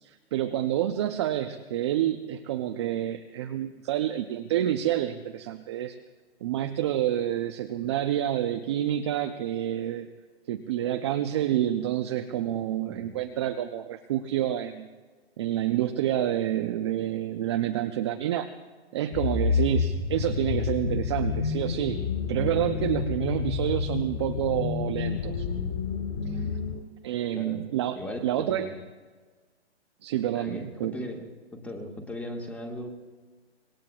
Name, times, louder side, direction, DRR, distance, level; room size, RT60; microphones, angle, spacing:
voice 1, 0.0-6.0 6.4-10.1 10.5-14.9 15.4-18.5 18.9-22.0 22.3-25.5 26.3-26.4 27.0-28.7 30.0-31.0, right 11 dB, 25° right, 6 dB, 0.5 m, -28 dB
sound 1, 19.1-26.7, left 5 dB, 40° left, 5.8 m, -29 dB
voice 2, 30.3-32.9, left 1 dB, 5° left, 2 dB, 1.6 m, -38 dB
26.0 x 21.0 x 2.4 m, 1.4 s
hypercardioid pair, 145°, 34 cm